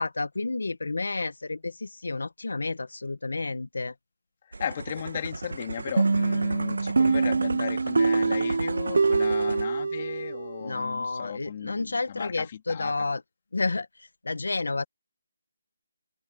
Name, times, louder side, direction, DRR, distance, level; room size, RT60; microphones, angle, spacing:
voice 1, 0.0-3.9 10.6-13.2 13.5-14.8, left 3 dB, 85° left, 1.6 m, -30 dB
sound 1, 4.5-9.7, right 3 dB, 85° right, 1.5 m, -35 dB
voice 2, 4.6-12.9, left 8 dB, 35° left, 3.3 m, -36 dB
sound 2, 6.0-10.7, right 4 dB, 65° right, 0.7 m, -24 dB
open air
figure-of-eight pair, 165°, 0 cm